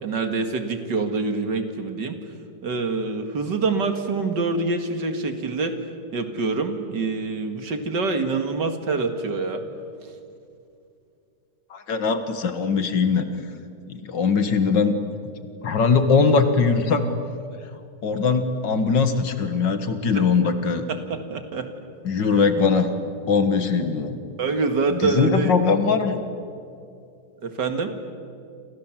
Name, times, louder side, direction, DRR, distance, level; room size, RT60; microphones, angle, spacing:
voice 1, 0.0-2.2 2.6-5.8 6.1-9.6 20.1-20.3 20.9-21.7 22.2-22.3 24.4-25.5 27.4-27.9, right 4 dB, 70° right, 7 dB, 2.6 m, -25 dB
voice 2, 11.7-13.3 13.9-14.9 15.6-17.0 18.0-20.9 22.0-22.9 23.3-24.2 24.9-26.2, left 5 dB, 75° left, 8 dB, 2.3 m, -21 dB
28.5 x 27.5 x 7.6 m, 2.5 s
omnidirectional pair, 2.0 m